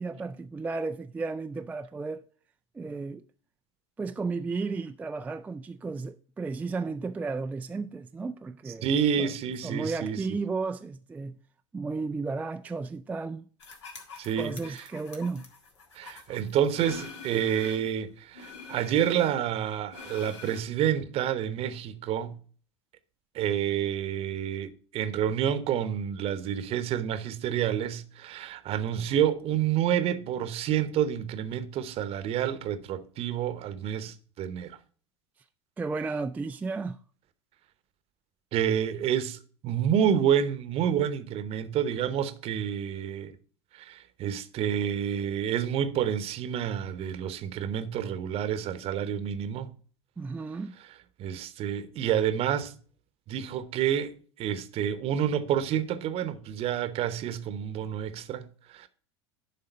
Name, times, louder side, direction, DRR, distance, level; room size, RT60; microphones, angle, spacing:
voice 1, 0.0-2.2 2.7-3.2 4.0-8.9 9.2-9.3 9.6-11.3 11.7-13.5 14.4-15.5 35.8-37.0 50.2-50.7, right 4 dB, 10° right, 0.3 m, -33 dB
voice 2, 8.8-10.2 14.2-14.8 15.9-22.3 23.3-34.8 38.5-43.3 43.7-49.7 51.2-52.7 53.3-58.9, right 9 dB, 40° right, 0.9 m, -29 dB
sound 1, 13.6-17.9 18.3-20.6, left 4 dB, 70° left, 1.8 m, -46 dB
11.0 x 3.7 x 5.4 m
figure-of-eight pair, 80°, 15 cm